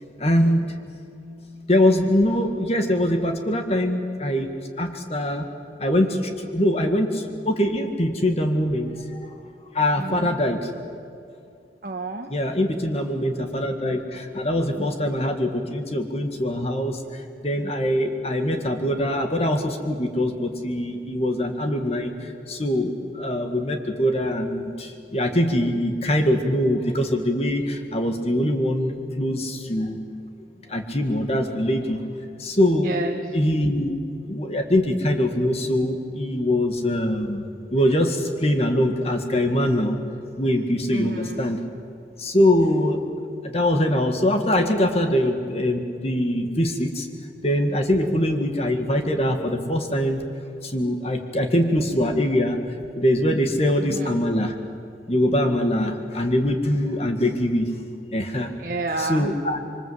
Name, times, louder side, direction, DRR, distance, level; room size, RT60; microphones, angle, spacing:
voice 1, 0.2-0.8 1.7-4.5 4.8-5.5 5.8-9.3 9.7-10.7 12.3-17.0 17.4-22.1 22.5-30.0 30.7-32.0 32.4-32.9 33.3-34.0 34.3-37.5 37.7-40.0 40.4-41.6 42.2-43.0 43.4-47.1 47.4-50.2 50.6-52.6 53.0-54.5 55.1-57.7 58.1-58.5 59.0-59.6, left 1 dB, 35° left, 5 dB, 1.9 m, -23 dB
voice 2, 10.0-10.4 11.8-12.3 32.8-33.4 40.9-41.5 53.8-54.2 58.6-59.4, right 2 dB, 50° right, 3 dB, 1.3 m, -30 dB
26.0 x 24.5 x 8.0 m, 2.5 s
head